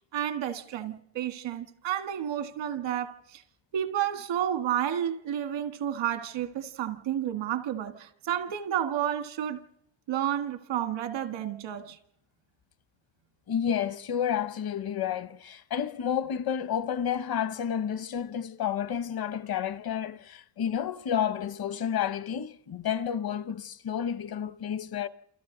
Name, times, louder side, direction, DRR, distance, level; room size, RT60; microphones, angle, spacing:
voice 1, 0.1-3.4 3.7-9.6 10.1-12.0, right 10 dB, 90° right, 1.8 m, -31 dB
voice 2, 13.5-25.1, left 9 dB, 55° left, 1.1 m, -30 dB
28.5 x 27.5 x 3.9 m
cardioid pair, 100°, 43 cm